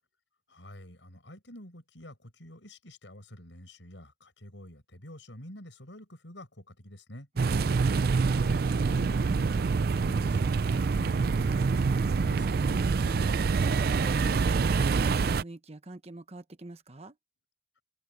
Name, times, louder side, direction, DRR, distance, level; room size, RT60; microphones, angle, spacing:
voice 1, 0.5-7.3 8.3-12.6, left 1 dB, 85° left, 6.1 m, -48 dB
sound 1, 7.4-15.4, right 4 dB, 55° right, 0.4 m, -26 dB
voice 2, 12.7-17.2, right 1 dB, 35° right, 1.2 m, -45 dB
head